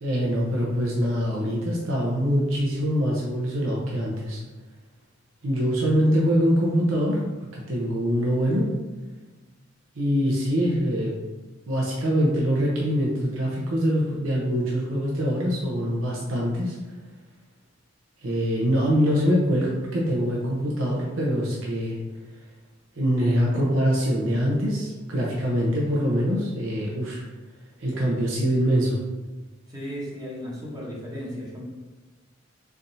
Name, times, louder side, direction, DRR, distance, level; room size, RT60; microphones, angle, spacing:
voice 1, 0.0-4.4 5.4-7.2 7.5-8.7 10.0-11.1 11.7-16.8 18.2-22.0 23.0-27.2 27.8-29.0, equal, 85° right, -3 dB, 0.7 m, -24 dB
voice 2, 29.7-31.6, equal, 20° right, -5 dB, 0.8 m, -35 dB
4.0 x 3.4 x 2.6 m, 1.2 s
head